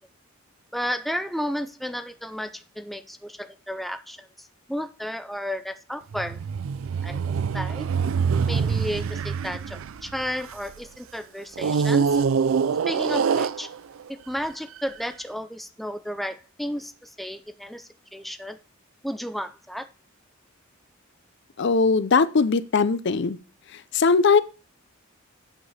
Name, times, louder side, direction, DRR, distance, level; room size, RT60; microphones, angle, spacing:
voice 1, 0.7-6.4 7.0-7.2 7.5-7.9 8.5-12.2 12.9-13.7 14.1-18.6 19.0-19.9, equal, ahead, 0.4 m, -33 dB
sound 1, 6.1-10.8 11.6-14.1 14.8-14.9, right 6 dB, 75° right, 0.4 m, -25 dB
voice 2, 21.6-23.4 23.7-24.4, left 4 dB, 60° left, 0.5 m, -20 dB
8.1 x 6.7 x 4.2 m
head